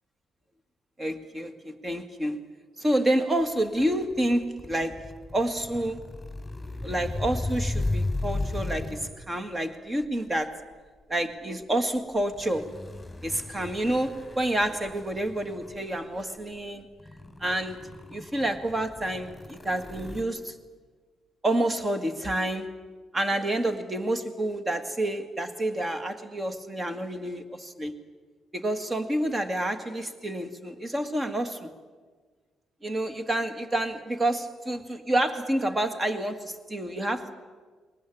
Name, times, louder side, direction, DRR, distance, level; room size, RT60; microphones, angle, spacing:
voice 1, 1.0-2.4 2.8-6.0 6.8-10.6 11.1-12.7 13.2-16.9 17.4-20.6 21.4-22.8 23.1-27.9 28.5-31.7 32.8-37.4, right 1 dB, 25° right, 9 dB, 2.0 m, -29 dB
sound 1, 3.6-9.2 10.0-10.3 12.2-16.0 16.5-16.6 17.0-20.2, left 2 dB, 5° left, 4.4 m, -35 dB
21.5 x 19.0 x 8.7 m, 1.4 s
cardioid pair, 90°, 0 cm